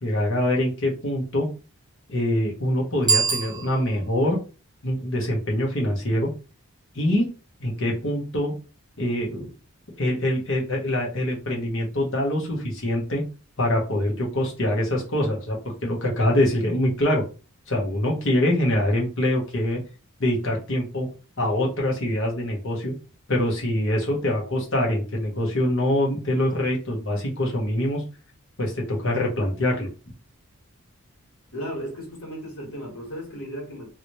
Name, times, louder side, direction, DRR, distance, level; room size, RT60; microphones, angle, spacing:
voice 1, 0.0-1.5 2.1-4.4 4.8-6.3 6.9-7.2 7.6-8.5 9.0-9.5 10.0-13.2 13.6-17.2 17.7-19.8 20.2-21.1 21.4-22.9 23.3-28.0 28.6-29.9, left 1 dB, 60° left, 1.3 m, -24 dB
Bicycle bell, 3.0-4.2, right 5 dB, 20° right, 0.8 m, -25 dB
voice 2, 31.5-33.9, equal, 80° left, 1.8 m, -35 dB
3.1 x 2.8 x 3.1 m
head